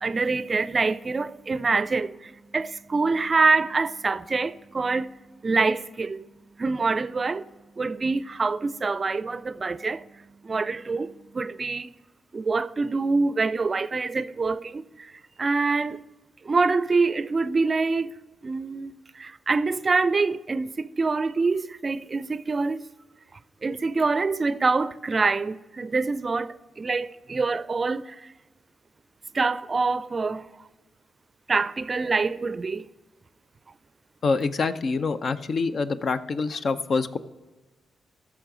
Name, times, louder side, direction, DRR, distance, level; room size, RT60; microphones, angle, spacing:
voice 1, 0.0-5.1 5.4-6.3 6.6-7.4 7.8-10.1 10.4-11.9 12.3-15.1 15.4-16.0 16.4-18.2 18.4-22.9 23.6-28.3 29.3-30.5 31.5-32.9, right 4 dB, 40° right, 0.4 m, -25 dB
voice 2, 34.2-37.2, left 4 dB, 60° left, 0.5 m, -26 dB
14.5 x 5.9 x 3.8 m
hypercardioid pair, 40°, 0 cm